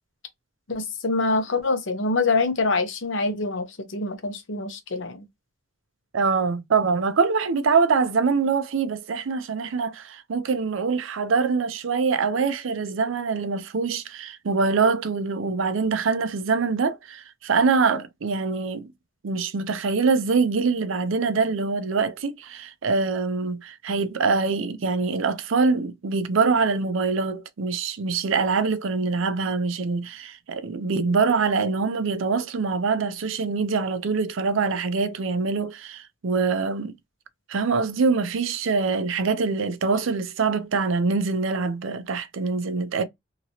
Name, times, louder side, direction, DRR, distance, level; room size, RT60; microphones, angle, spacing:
voice 1, 0.7-5.2, left 3 dB, 80° left, 0.9 m, -25 dB
voice 2, 6.1-18.9 19.2-37.0 37.5-43.0, right 4 dB, 90° right, 0.5 m, -24 dB
2.9 x 2.8 x 2.7 m
head